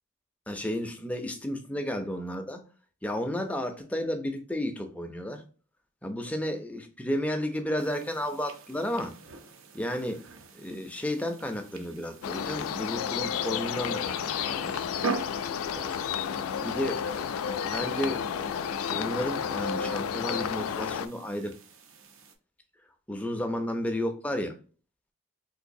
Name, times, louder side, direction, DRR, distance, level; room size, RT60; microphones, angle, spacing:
voice 1, 0.5-2.6 3.0-5.4 6.0-9.1 9.7-10.2 10.5-14.8 15.7-16.0 16.5-17.3 17.6-18.5 18.9-21.5 23.1-24.6, left 1 dB, 5° left, 4 dB, 0.4 m, -32 dB
sound 1, 7.8-22.4, right 4 dB, 70° right, 0.6 m, -44 dB
sound 2, 12.2-21.1, left 7 dB, 85° left, 0.3 m, -31 dB
3.8 x 2.6 x 2.6 m, 0.38 s
head